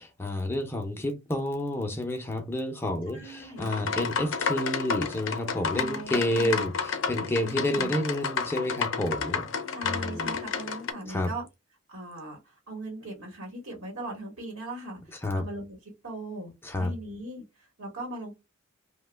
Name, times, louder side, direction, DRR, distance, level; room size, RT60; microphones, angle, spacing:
voice 1, 0.0-9.5 9.8-10.4 11.1-11.3 15.2-15.5 16.6-16.9, left 1 dB, 10° left, 0.5 m, -30 dB
voice 2, 3.1-3.7 5.7-6.6 7.4-8.0 9.7-11.4 11.9-18.3, right 1 dB, 80° right, 1.1 m, -40 dB
sound 1, 3.6-10.9, left 6 dB, 60° left, 0.5 m, -31 dB
2.9 x 2.1 x 3.2 m
head